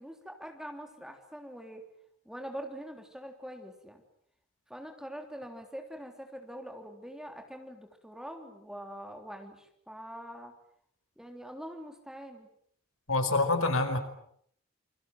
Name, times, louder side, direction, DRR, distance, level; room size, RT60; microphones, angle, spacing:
voice 1, 0.0-1.8 2.2-4.0 4.7-9.6 9.9-10.5 11.2-12.5, equal, 5° right, 4 dB, 3.4 m, -44 dB
voice 2, 13.1-14.0, left 2 dB, 85° left, 8 dB, 4.9 m, -26 dB
28.5 x 25.0 x 7.8 m, 0.67 s
head